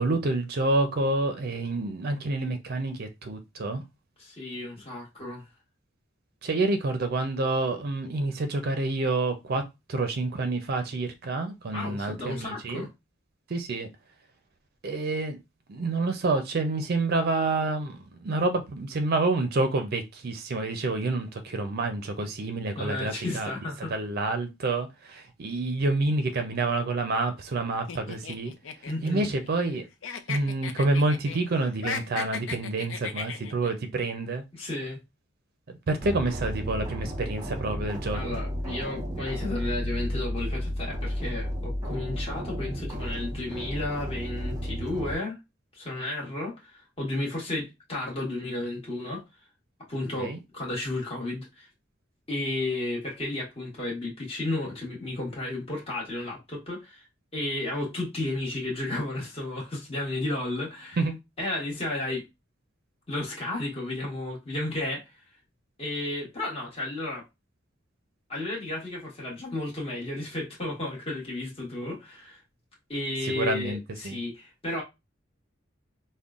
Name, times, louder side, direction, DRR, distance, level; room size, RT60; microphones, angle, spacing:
voice 1, 0.0-3.8 6.4-9.6 9.9-12.9 13.5-13.9 14.8-15.4 15.7-23.5 23.9-28.5 29.0-29.8 30.3-34.4 35.7-38.4 50.2-50.4 61.0-61.2 73.2-74.2, right 2 dB, 55° right, 0.5 m, -28 dB
voice 2, 4.2-5.5 11.7-12.9 22.8-24.0 28.9-29.3 34.5-35.0 38.1-45.4 45.7-49.2 49.9-51.7 52.3-57.1 57.3-61.0 61.4-62.3 63.1-65.1 65.8-67.2 68.3-72.4 72.9-74.8, left 2 dB, 30° left, 1.2 m, -33 dB
sound 1, 27.9-29.8 30.0-31.4 31.7-33.7, left 6 dB, 80° left, 0.5 m, -36 dB
sound 2, 36.0-45.1, equal, 20° right, 0.8 m, -33 dB
5.2 x 2.1 x 2.4 m
head